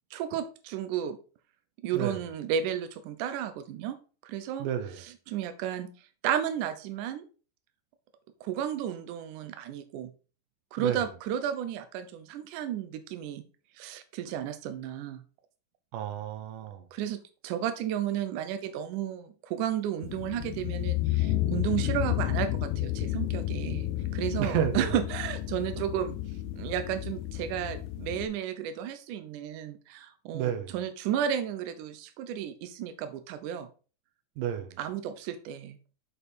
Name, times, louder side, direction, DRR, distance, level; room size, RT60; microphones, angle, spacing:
voice 1, 0.1-1.2 1.8-4.0 4.2-4.7 5.0-5.9 6.2-7.3 8.4-10.1 10.7-13.4 13.8-15.2 16.9-26.2 26.5-33.7 34.8-35.8, right 9 dB, 90° right, 1.8 m, -33 dB
voice 2, 4.6-5.0 10.8-11.1 15.9-16.9 24.4-24.9 30.3-30.7 34.4-34.8, right 9 dB, 70° right, 2.2 m, -31 dB
sound 1, 20.0-28.3, left 14 dB, 80° left, 2.4 m, -31 dB
6.7 x 5.3 x 4.2 m
omnidirectional pair, 4.5 m